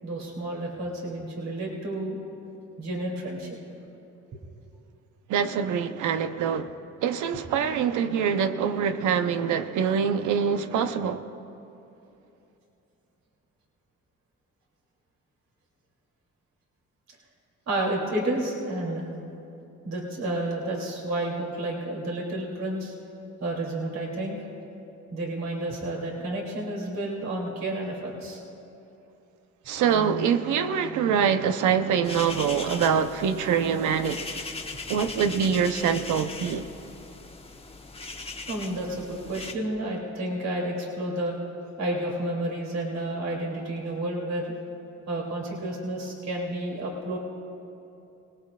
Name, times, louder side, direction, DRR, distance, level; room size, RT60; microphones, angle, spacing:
voice 1, 0.0-2.2 2.8-3.6 17.7-19.1 19.8-22.9 23.4-24.4 25.1-28.4 38.5-41.4 41.8-44.5 45.1-47.2, right 1 dB, 60° right, 2.9 m, -31 dB
voice 2, 5.3-6.7 7.0-11.2 29.7-34.4 34.9-36.7, right 7 dB, 80° right, 0.8 m, -25 dB
sound 1, 32.0-39.5, left 3 dB, 20° left, 1.1 m, -39 dB
25.0 x 19.0 x 2.4 m
cardioid pair, 90°, 30 cm